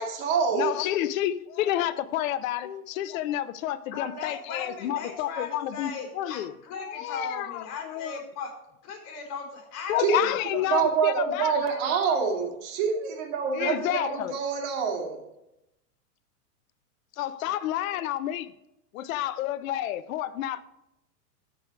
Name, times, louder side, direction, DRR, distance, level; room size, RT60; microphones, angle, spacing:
voice 1, 0.0-0.7 10.0-10.2 10.7-15.2, right 6 dB, 45° right, 2.7 m, -26 dB
voice 2, 0.5-8.2 9.9-12.0 13.5-14.4 17.2-18.5 18.9-20.6, left 12 dB, 60° left, 0.6 m, -30 dB
voice 3, 3.9-8.5 8.8-10.7, left 5 dB, 40° left, 4.1 m, -38 dB
13.0 x 4.9 x 4.9 m
hypercardioid pair, 110°, 47 cm